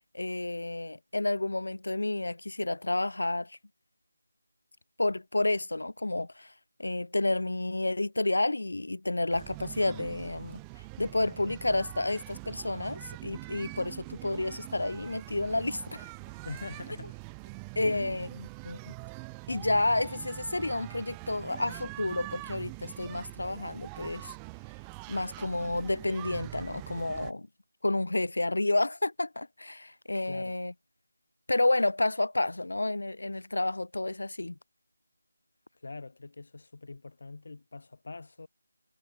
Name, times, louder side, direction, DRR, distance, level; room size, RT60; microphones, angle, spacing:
voice 1, 0.1-3.6 5.0-6.5 6.8-10.6 11.0-16.1 17.8-18.9 19.5-24.3 25.1-27.5 27.8-30.7 31.5-34.6, left 2 dB, 80° left, 0.3 m, -30 dB
sound 1, 9.3-27.3, right 36 dB, 5° right, 0.6 m, -44 dB
voice 2, 16.4-17.2 17.8-18.3 30.3-30.6 35.7-38.5, left 3 dB, 45° left, 3.0 m, -43 dB
figure-of-eight pair, 175°, 0 cm